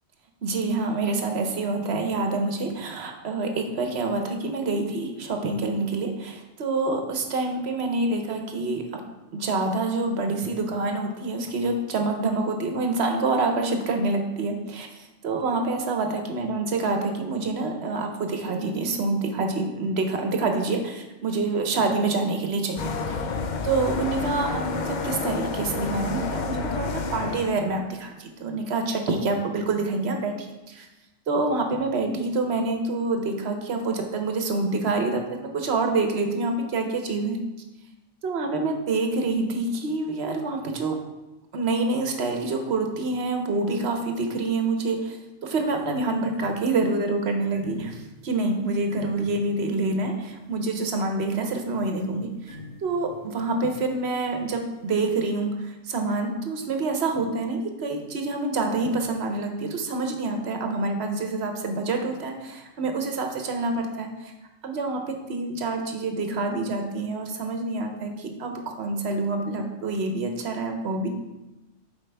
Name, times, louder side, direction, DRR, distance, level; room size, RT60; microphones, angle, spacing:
voice 1, 0.4-9.0 9.3-23.3 23.6-30.9 31.3-35.2 35.5-37.4 38.2-41.0 41.5-52.6 52.8-64.3 64.6-71.1, right 3 dB, 60° right, 4 dB, 1.0 m, -27 dB
sound 1, 22.8-27.5, left 4 dB, 60° left, 0.5 m, -29 dB
sound 2, 45.6-55.2, left 2 dB, 85° left, 2.4 m, -47 dB
7.6 x 4.6 x 3.3 m, 1.0 s
omnidirectional pair, 1.3 m